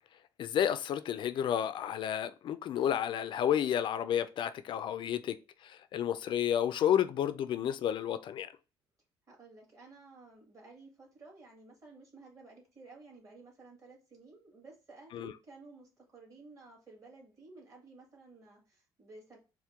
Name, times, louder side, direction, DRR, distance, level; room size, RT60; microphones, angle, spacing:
voice 1, 0.4-8.5 15.1-15.3, left 10 dB, 60° left, 0.4 m, -31 dB
voice 2, 9.3-19.4, right 3 dB, 35° right, 2.1 m, -54 dB
4.3 x 2.2 x 3.6 m
cardioid pair, 100°, 10 cm